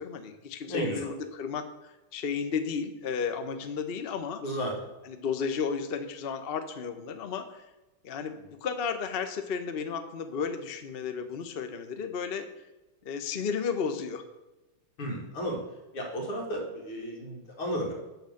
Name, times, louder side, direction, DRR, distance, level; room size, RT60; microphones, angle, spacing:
voice 1, 0.0-4.4 5.0-7.7 8.0-12.5 13.0-14.2, left 6 dB, 45° left, 9 dB, 0.7 m, -33 dB
voice 2, 0.6-1.1 4.4-4.7 15.0-15.6 15.9-17.9, equal, 80° left, -1 dB, 3.6 m, -33 dB
12.0 x 4.9 x 7.8 m, 1.1 s
omnidirectional pair, 2.4 m